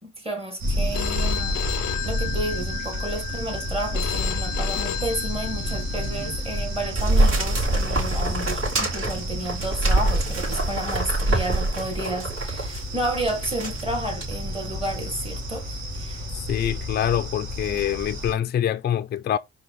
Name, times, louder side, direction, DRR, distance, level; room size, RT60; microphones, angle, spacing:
voice 1, 0.0-1.6 2.0-16.3, right 1 dB, 20° right, 1.6 m, -31 dB
sound 1, 0.6-18.3, equal, 65° right, 2.1 m, -30 dB
Telephone, 0.9-6.9, left 14 dB, 85° left, 0.5 m, -33 dB
sound 2, 7.0-12.8 13.3-13.8 14.2-14.3, right 2 dB, 45° right, 3.0 m, -25 dB
voice 2, 16.5-19.4, left 10 dB, 35° left, 0.4 m, -25 dB
4.5 x 2.9 x 4.0 m
cardioid pair, 90°, 30 cm